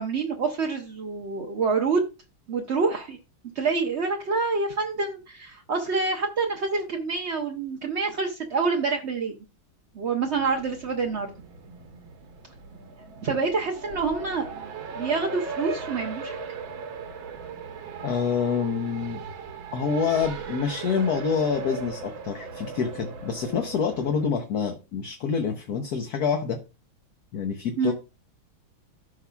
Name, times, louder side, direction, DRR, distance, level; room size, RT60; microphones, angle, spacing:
voice 1, 0.0-2.1 2.5-3.2 3.6-9.4 9.9-11.3 13.2-14.7 15.0-16.4 27.8-27.9, right 4 dB, 60° right, 2 dB, 0.7 m, -27 dB
Race car auto racing, 10.2-24.3, right 4 dB, 75° right, 1.9 m, -38 dB
voice 2, 18.0-19.2 19.7-26.6 27.3-27.9, left 6 dB, 60° left, 4 dB, 1.2 m, -27 dB
14.5 x 5.6 x 2.3 m, 0.29 s
omnidirectional pair, 2.2 m